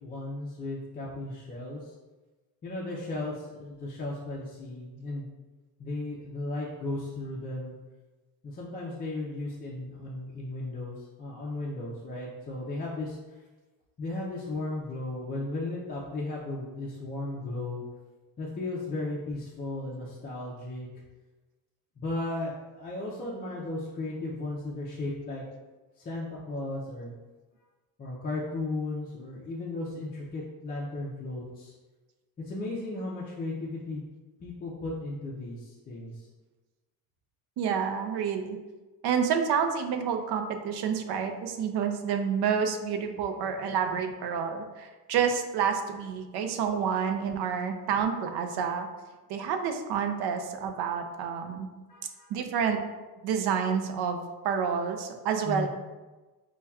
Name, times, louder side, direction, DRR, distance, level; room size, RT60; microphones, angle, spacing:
voice 1, 0.0-1.9 2.6-5.3 5.8-7.8 8.4-13.2 14.0-17.8 18.4-21.0 22.0-25.4 26.0-27.1 28.0-31.7 32.4-34.0 34.4-36.3 51.9-52.3 55.4-55.7, left 2 dB, 25° left, -6 dB, 0.3 m, -35 dB
voice 2, 37.6-38.6 39.0-48.9 49.3-51.7 52.3-52.8 53.2-55.7, right 7 dB, 80° right, 6 dB, 0.5 m, -29 dB
5.5 x 2.2 x 2.2 m, 1.2 s
cardioid pair, 175°, 38 cm